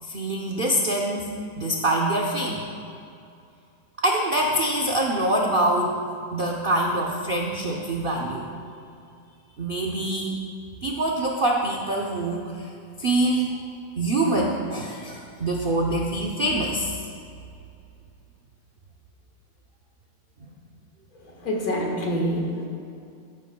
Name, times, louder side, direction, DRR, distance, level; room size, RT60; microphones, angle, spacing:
voice 1, 0.0-1.3 1.6-2.6 4.0-6.0 6.3-8.5 9.6-10.4 10.8-12.7 13.0-13.6 14.0-16.9, right 1 dB, 85° right, -2 dB, 0.4 m, -25 dB
voice 2, 21.1-22.7, equal, 55° left, -1 dB, 1.9 m, -27 dB
16.5 x 9.2 x 2.2 m, 2.5 s
omnidirectional pair, 2.0 m